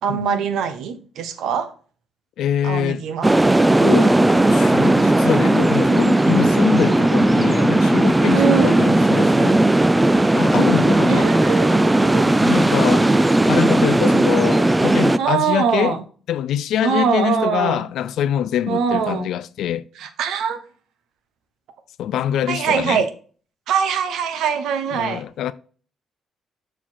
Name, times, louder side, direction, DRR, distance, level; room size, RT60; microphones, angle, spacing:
voice 1, 0.0-1.7 2.6-3.3 8.3-8.7 11.1-12.4 15.2-16.0 16.8-17.8 18.7-19.3 20.0-20.6 22.5-23.1 23.7-25.2, right 7 dB, 80° right, 1.0 m, -22 dB
voice 2, 2.4-3.0 3.8-4.1 4.5-9.6 10.3-11.4 12.2-16.0 16.3-19.9 22.0-23.0 24.9-25.5, left 10 dB, 80° left, 0.4 m, -24 dB
sound 1, 3.2-15.2, right 1 dB, 15° right, 0.4 m, -16 dB
7.2 x 4.4 x 4.4 m
cardioid pair, 90°, 0 cm